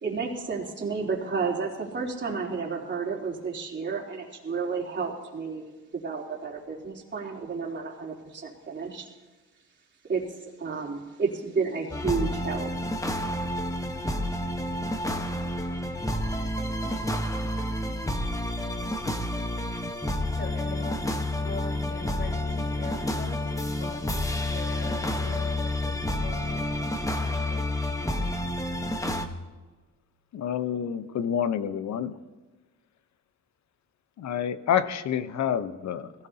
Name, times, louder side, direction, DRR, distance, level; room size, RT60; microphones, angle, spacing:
voice 1, 0.0-5.7 6.0-9.1 10.1-12.7, right 5 dB, 40° right, -2 dB, 3.5 m, -31 dB
sound 1, 11.9-29.3, left 1 dB, 10° left, 1.3 m, -29 dB
voice 2, 20.3-24.0 24.3-27.7, left 2 dB, 35° left, 1 dB, 4.4 m, -41 dB
voice 3, 30.3-32.1 34.2-36.1, left 8 dB, 65° left, 12 dB, 1.0 m, -28 dB
21.0 x 16.5 x 2.9 m, 1.2 s
cardioid pair, 90°, 30 cm